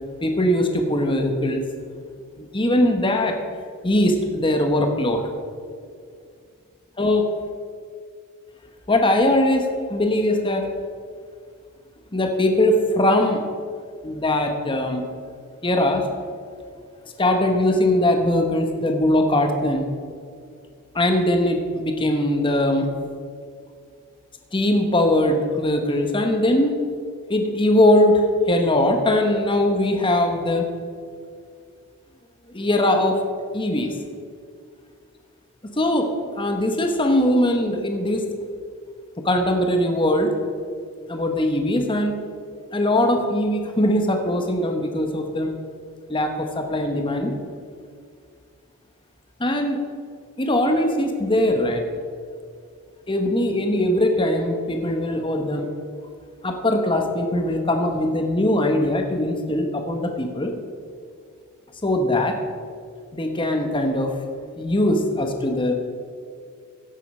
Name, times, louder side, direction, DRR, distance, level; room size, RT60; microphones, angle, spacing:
voice 1, 0.2-1.7 2.4-3.4 3.8-5.2 7.0-7.3 8.9-10.7 12.1-13.4 14.0-15.1 15.6-16.1 17.2-19.9 20.9-22.9 24.5-26.8 27.3-30.6 32.5-33.2 33.5-34.0 35.8-38.2 39.2-40.3 41.1-42.2 42.7-45.5 46.1-47.3 49.4-49.8 50.4-51.8 53.1-55.7 56.4-60.5 61.8-62.4 63.1-64.1 64.6-65.7, left 1 dB, 20° left, 4 dB, 1.1 m, -21 dB
16.0 x 8.2 x 5.5 m, 2.2 s
head